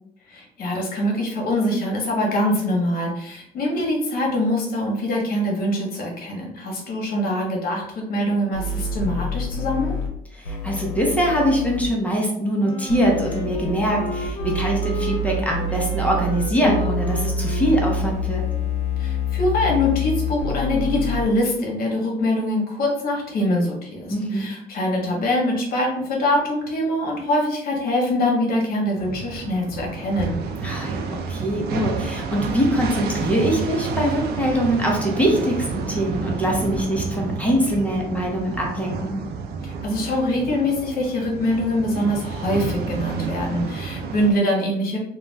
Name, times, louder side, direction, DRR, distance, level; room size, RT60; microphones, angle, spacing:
voice 1, 0.3-9.9 19.0-30.4 39.6-45.0, left 1 dB, 60° left, -1 dB, 1.0 m, -23 dB
sound 1, 8.5-10.1 10.4-11.8 12.9-21.2, left 2 dB, 80° left, 0.7 m, -27 dB
voice 2, 10.3-18.4 24.1-24.5 30.6-39.2, equal, 10° left, -2 dB, 0.7 m, -23 dB
Wind instrument woodwind instrument, 12.6-19.4, left 3 dB, 35° left, 0.9 m, -35 dB
sound 2, 29.0-44.3, right 5 dB, 70° right, 0.4 m, -30 dB
2.4 x 2.3 x 3.2 m, 0.76 s
cardioid pair, 110°, 17 cm